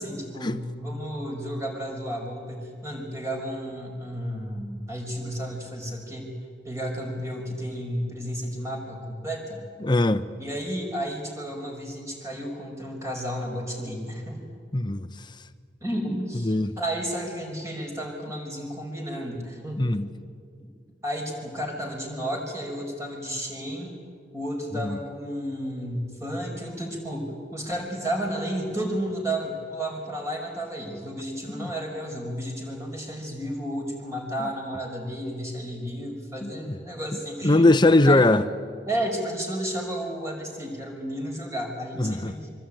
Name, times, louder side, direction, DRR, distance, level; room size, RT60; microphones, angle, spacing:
voice 1, 0.0-6.3 6.6-9.6 10.4-14.4 15.8-19.8 21.0-23.9 24.3-38.2 38.9-42.5, equal, 15° right, 5.5 m, -32 dB
voice 2, 9.8-10.3 14.7-15.1 16.4-16.7 19.8-20.1 24.7-25.0 31.5-31.7 34.4-34.5 36.4-36.8 37.4-38.4 42.0-42.3, left 2 dB, 25° left, 0.8 m, -21 dB
24.5 x 24.5 x 9.1 m
head